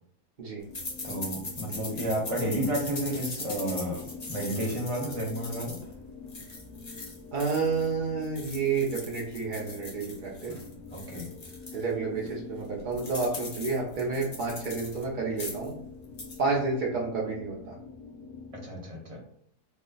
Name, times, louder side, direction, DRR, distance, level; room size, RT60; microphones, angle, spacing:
sound 1, 0.7-18.7, left 5 dB, 85° left, 1.3 m, -46 dB
sound 2, 0.7-7.9 8.2-11.8 12.2-12.3 12.6-15.0 15.3-15.7 16.0-16.4, left 2 dB, 45° left, 0.5 m, -41 dB
voice 1, 1.0-5.8 10.9-11.3 18.6-19.2, right 1 dB, 25° right, -2 dB, 0.9 m, -31 dB
voice 2, 7.3-10.5 11.7-15.7 16.4-17.8, right 4 dB, 70° right, -4 dB, 0.4 m, -30 dB
3.1 x 2.1 x 3.8 m, 0.64 s
omnidirectional pair, 1.7 m